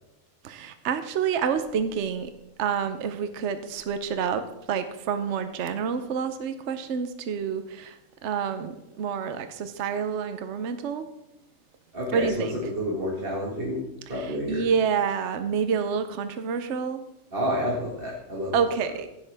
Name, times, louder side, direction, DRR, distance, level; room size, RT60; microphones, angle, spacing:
voice 1, 0.4-2.3 2.6-11.1 12.1-12.6 14.2-17.0 18.5-19.1, right 6 dB, 60° right, 9 dB, 1.0 m, -28 dB
voice 2, 11.9-14.7 17.3-18.5, equal, 45° right, -3 dB, 1.8 m, -29 dB
15.5 x 8.5 x 3.4 m, 0.89 s
omnidirectional pair, 1.4 m